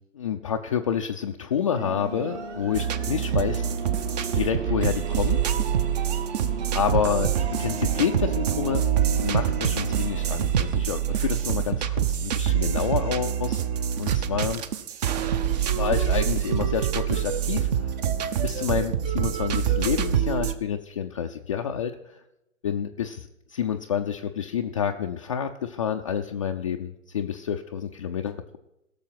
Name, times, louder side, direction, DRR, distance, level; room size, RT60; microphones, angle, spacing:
voice 1, 0.1-3.7 4.3-5.4 6.7-8.9 9.2-13.6 14.0-14.6 15.7-18.0 18.4-22.2 22.6-28.6, left 8 dB, 25° left, 3 dB, 0.4 m, -28 dB
sound 1, 1.7-10.4, right 4 dB, 65° right, 3.0 m, -35 dB
sound 2, 2.7-20.5, right 9 dB, 30° right, 0.7 m, -25 dB
17.0 x 6.9 x 5.7 m, 0.87 s
hypercardioid pair, 135°, 40 cm